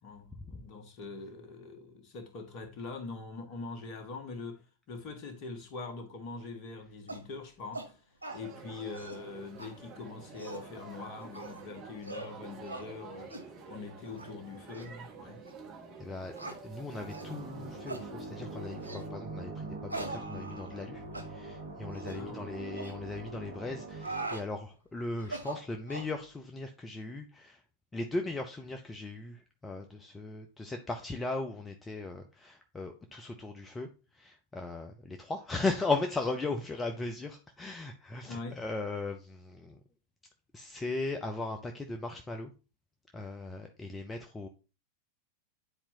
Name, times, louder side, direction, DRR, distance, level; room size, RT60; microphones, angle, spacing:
voice 1, 0.0-4.6 4.9-8.0 8.3-13.3 13.7-15.4 22.1-22.6 38.3-38.6, left 4 dB, 40° left, 1.5 m, -43 dB
sound 1, 7.1-7.3 7.7-7.9 8.2-8.4 8.8-9.2 9.6-9.7 10.2-10.7 11.3-11.6 12.0-12.3 12.7-12.9 13.3-13.5 14.1-14.3 14.7-14.9 15.5-15.6 16.4-16.6 17.1-17.3 17.9-18.1 18.8-19.1 19.9-20.9 21.1-21.3 21.9-22.2 22.7-22.9 23.8-24.5 25.2-26.1, right 2 dB, 90° left, 1.0 m, -41 dB
sound 2, 8.3-19.1, right 5 dB, 35° right, 1.6 m, -49 dB
voice 2, 16.0-27.6 27.9-39.8 40.5-42.5 43.1-44.5, left 3 dB, 15° left, 0.6 m, -37 dB
sound 3, 16.9-24.3, right 2 dB, 65° right, 1.6 m, -43 dB
9.8 x 4.3 x 2.8 m
figure-of-eight pair, 90°, 0 cm